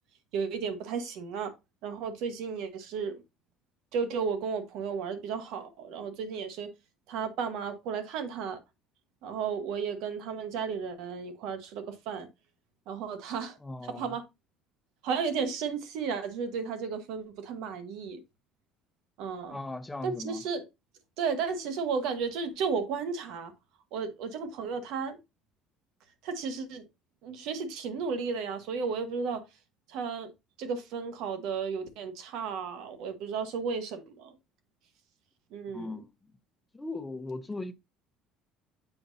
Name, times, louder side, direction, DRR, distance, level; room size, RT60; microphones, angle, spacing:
voice 1, 0.3-1.5 1.8-3.2 3.9-6.7 7.1-8.6 9.2-12.3 12.9-13.6 13.8-14.2 15.0-18.2 19.2-19.6 20.0-20.6 21.2-23.5 23.9-25.2 26.2-26.8 27.2-29.4 29.9-30.3 30.6-34.3 35.5-36.0, right 5 dB, 75° right, 1.3 m, -33 dB
voice 2, 13.6-14.1 19.5-20.4 35.7-36.1 36.7-37.7, left 2 dB, 15° left, 0.7 m, -38 dB
7.0 x 5.0 x 2.7 m
supercardioid pair, 105°, 0 cm